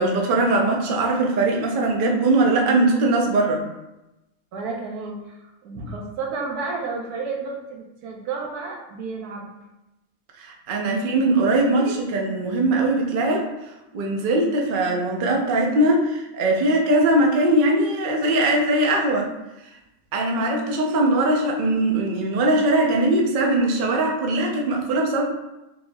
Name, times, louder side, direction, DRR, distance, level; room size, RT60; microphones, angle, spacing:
voice 1, 0.0-3.6 10.4-13.5 13.9-19.3 20.1-25.2, right 2 dB, 60° right, 1 dB, 0.5 m, -21 dB
voice 2, 4.5-9.5 10.9-11.0 11.8-11.9, right 4 dB, 85° right, 0 dB, 1.3 m, -31 dB
4.2 x 3.4 x 2.2 m, 0.95 s
omnidirectional pair, 1.6 m